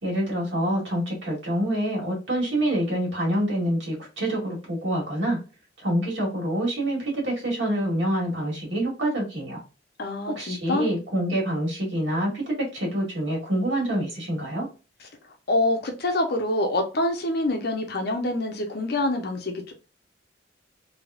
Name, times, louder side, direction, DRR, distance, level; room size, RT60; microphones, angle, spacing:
voice 1, 0.0-5.4 5.8-9.6 10.4-14.7, right 1 dB, 80° right, 2.0 m, -26 dB
voice 2, 10.0-10.9 15.5-19.7, left 2 dB, 60° left, 0.8 m, -26 dB
3.4 x 3.0 x 2.4 m
head